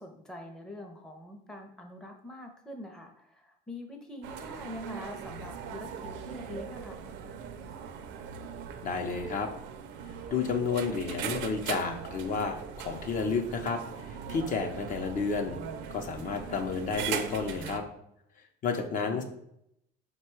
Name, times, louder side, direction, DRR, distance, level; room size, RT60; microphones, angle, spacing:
voice 1, 0.0-7.0 19.0-19.2, left 1 dB, 5° left, 2 dB, 0.5 m, -44 dB
sound 1, 4.2-17.8, right 7 dB, 80° right, 0.5 m, -40 dB
voice 2, 8.8-9.5 10.3-15.6 15.9-17.8 18.6-19.2, left 5 dB, 45° left, 5 dB, 0.6 m, -31 dB
4.6 x 2.2 x 4.4 m, 0.76 s
cardioid pair, 130°, 19 cm